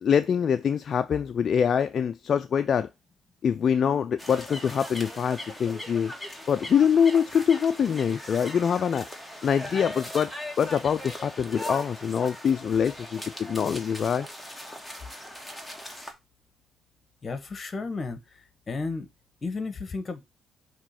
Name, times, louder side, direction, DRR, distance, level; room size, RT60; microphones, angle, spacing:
voice 1, 0.0-2.9 3.4-6.1 6.5-9.1 9.4-10.3 10.6-14.3, left 7 dB, 55° left, 0.4 m, -24 dB
sound 1, 4.2-16.1, left 1 dB, ahead, 1.6 m, -39 dB
voice 2, 17.2-18.2 18.7-19.1 19.4-20.2, left 3 dB, 35° left, 1.3 m, -32 dB
6.0 x 3.1 x 5.7 m
cardioid pair, 90°, 0 cm